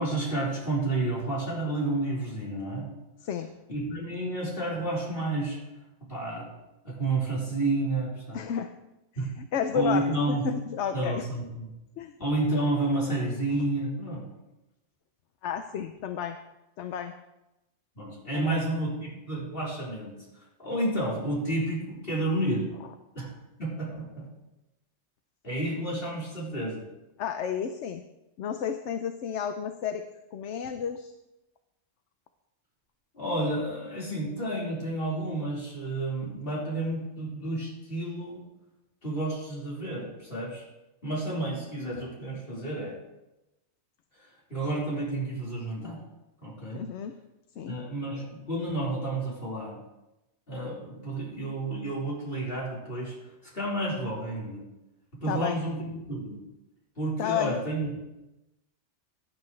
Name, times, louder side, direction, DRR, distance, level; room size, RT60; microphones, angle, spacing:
voice 1, 0.0-2.9 3.7-5.6 6.1-6.5 6.8-8.4 9.1-9.3 9.7-10.4 10.9-11.7 12.2-14.2 17.9-20.2 20.6-22.6 23.1-23.3 23.6-24.3 25.4-26.8 33.1-38.4 39.0-40.6 41.0-42.9 44.5-46.0 46.4-46.8 47.7-49.8 50.5-53.1 53.5-54.6 55.2-56.4 57.0-58.0, right 2 dB, 50° left, -6 dB, 4.6 m, -30 dB
voice 2, 8.3-8.7 9.5-11.3 12.0-12.1 15.4-16.4 16.8-17.1 18.3-18.6 27.2-28.0 28.4-30.0 30.3-31.1 46.7-47.2 47.6-47.8 55.3-55.6 57.2-57.5, left 8 dB, 70° left, 8 dB, 1.0 m, -31 dB
17.0 x 10.5 x 3.2 m, 0.97 s
omnidirectional pair, 1.2 m